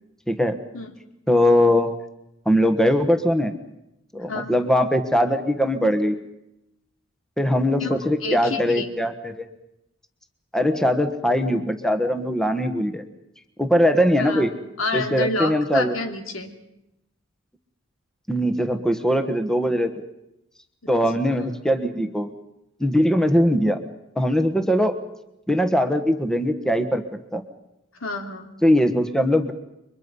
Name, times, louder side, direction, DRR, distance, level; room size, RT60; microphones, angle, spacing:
voice 1, 1.3-1.9 2.4-3.5 4.1-6.2 7.4-9.4 10.5-13.0 13.6-14.5 14.9-15.9 18.3-19.9 20.9-22.3 22.8-23.8 24.2-24.9 25.5-27.0 27.3-27.4 28.6-29.5, equal, 5° left, 7 dB, 1.4 m, -21 dB
voice 2, 7.8-8.9 13.7-13.8 14.2-14.5 14.8-16.5 20.8-20.9 21.3-21.4 28.0-28.5, left 2 dB, 90° left, 5 dB, 3.1 m, -29 dB
30.0 x 24.0 x 5.5 m, 0.85 s
head